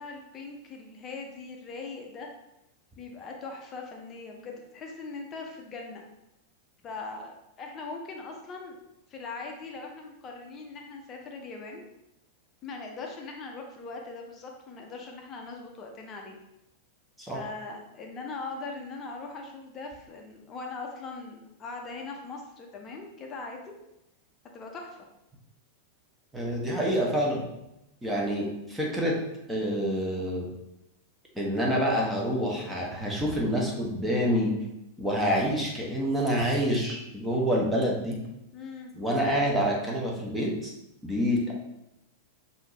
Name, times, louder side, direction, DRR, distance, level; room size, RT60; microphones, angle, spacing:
voice 1, 0.0-2.3 3.0-6.0 6.8-8.8 9.1-11.8 12.6-16.4 17.2-23.7 24.5-25.0 38.5-38.9, left 3 dB, 30° left, 1 dB, 0.6 m, -40 dB
voice 2, 26.3-27.4 28.0-29.2 29.5-30.5 31.3-34.5 35.0-38.2 39.0-40.7 41.0-41.5, equal, 5° right, -2 dB, 1.0 m, -27 dB
5.6 x 2.7 x 3.1 m, 0.88 s
figure-of-eight pair, 90°, 0 cm